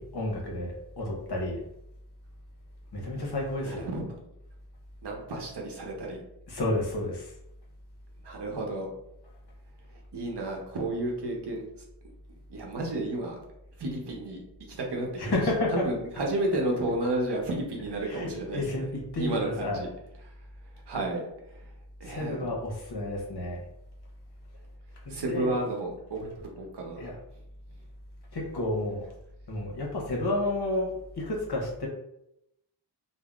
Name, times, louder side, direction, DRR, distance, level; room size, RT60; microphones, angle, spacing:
voice 1, 0.0-1.6 2.9-3.8 6.5-7.3 15.2-15.8 18.0-19.8 22.0-23.6 25.0-25.5 27.0-27.2 28.3-29.1 29.5-31.9, left 2 dB, 65° left, -1 dB, 0.9 m, -31 dB
voice 2, 3.6-4.2 5.0-6.2 8.2-8.9 10.1-11.6 12.5-13.4 13.8-14.4 14.7-15.3 15.7-18.9 19.2-19.9 20.9-21.2 22.0-22.4 25.1-27.1, right 1 dB, 70° right, 0 dB, 0.8 m, -32 dB
3.5 x 2.1 x 2.4 m, 0.81 s
wide cardioid pair, 100°, 42 cm